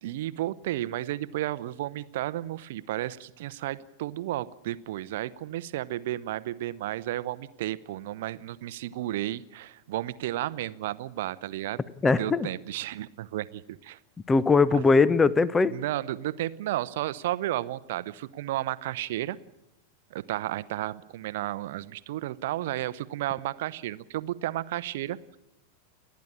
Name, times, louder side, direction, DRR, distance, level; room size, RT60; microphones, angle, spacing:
voice 1, 0.0-14.0 14.7-14.8 15.6-19.4 20.1-25.4, right 14 dB, 55° right, 17 dB, 0.7 m, -33 dB
voice 2, 12.0-12.5 14.3-15.7, left 4 dB, 15° left, 20 dB, 0.7 m, -20 dB
30.0 x 10.5 x 8.7 m, 0.92 s
figure-of-eight pair, 90°, 0 cm